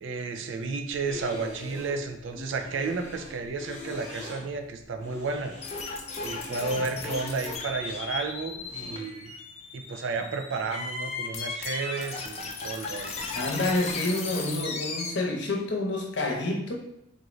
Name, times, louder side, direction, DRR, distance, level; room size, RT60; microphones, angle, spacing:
voice 1, 0.0-5.5 6.2-9.3 9.7-13.2, right 4 dB, 75° right, 6 dB, 0.4 m, -32 dB
sound 1, 0.9-9.0, left 1 dB, 15° left, 0.8 m, -43 dB
sound 2, 5.6-15.1, left 4 dB, 30° left, 0.4 m, -36 dB
voice 2, 13.3-16.8, left 2 dB, 65° left, 1 dB, 0.7 m, -28 dB
3.8 x 2.5 x 3.0 m, 0.83 s
head